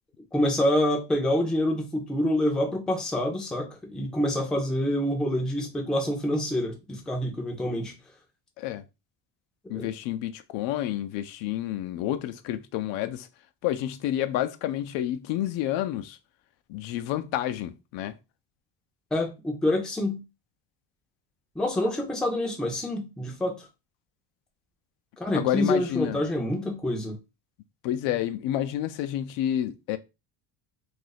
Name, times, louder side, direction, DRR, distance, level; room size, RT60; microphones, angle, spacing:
voice 1, 0.3-7.9 9.6-9.9 19.1-20.2 21.6-23.7 25.2-27.2, left 1 dB, ahead, 0.4 m, -27 dB
voice 2, 9.7-13.3 13.6-16.2 16.7-18.1 25.3-26.2 27.8-30.0, left 12 dB, 75° left, 0.5 m, -29 dB
2.8 x 2.5 x 3.9 m
cardioid pair, 165°, 45 cm